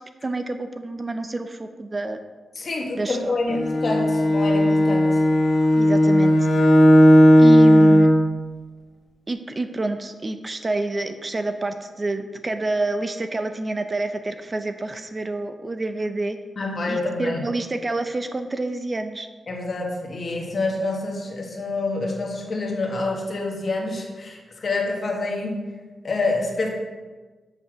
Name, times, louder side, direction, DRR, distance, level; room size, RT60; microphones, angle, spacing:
voice 1, 0.2-2.2 3.0-3.6 5.7-6.5 7.4-8.1 9.3-16.4 16.9-19.3, right 2 dB, 30° right, 8 dB, 0.5 m, -28 dB
voice 2, 2.5-5.2 16.6-17.4 19.5-25.6 26.0-26.7, left 2 dB, 50° left, 0 dB, 1.7 m, -27 dB
Bowed string instrument, 3.5-8.2, equal, 85° left, 1.7 m, -15 dB
6.9 x 5.4 x 6.2 m, 1.3 s
cardioid pair, 95°, 0 cm